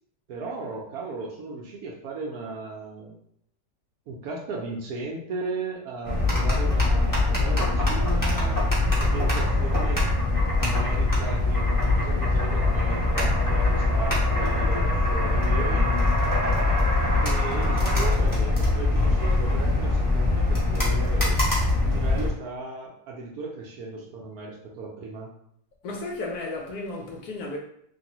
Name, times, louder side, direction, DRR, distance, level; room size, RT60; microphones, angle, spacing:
voice 1, 0.3-3.2 4.1-8.6 9.0-10.0 10.6-15.9 17.2-21.4 21.8-25.3, right 3 dB, 70° right, 1.0 m, -36 dB
sound 1, 6.0-22.3, left 2 dB, 25° left, 0.4 m, -23 dB
voice 2, 25.8-27.6, left 2 dB, 70° left, 0.9 m, -33 dB
3.2 x 2.6 x 2.9 m
omnidirectional pair, 1.9 m